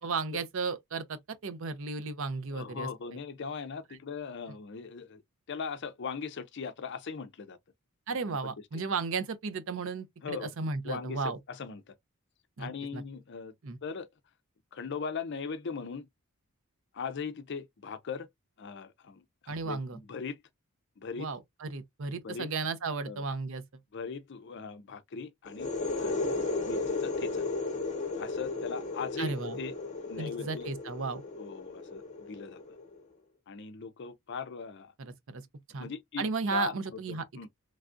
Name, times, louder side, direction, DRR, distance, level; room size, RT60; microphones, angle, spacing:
voice 1, 0.0-2.9 8.1-11.4 12.6-13.0 13.6-13.8 19.5-20.0 21.2-23.6 29.2-29.6 30.2-31.2 35.0-35.4 35.7-35.9 36.2-37.2, right 4 dB, 60° right, 0.6 m, -34 dB
voice 2, 2.5-5.2 5.5-7.6 8.3-8.4 8.7-8.8 10.2-10.5 10.8-11.9 12.6-13.5 13.8-14.1 14.7-16.1 16.9-18.3 18.6-20.4 21.0-21.3 22.2-22.5 23.1-23.2 23.9-25.7 26.0-26.2 26.6-27.4 28.2-29.7 30.0-30.7 31.4-32.8 33.5-34.9 35.8-36.7 37.1-37.5, left 5 dB, 55° left, 0.5 m, -39 dB
sound 1, 25.5-33.0, left 3 dB, 35° left, 0.9 m, -34 dB
3.3 x 2.3 x 2.5 m
head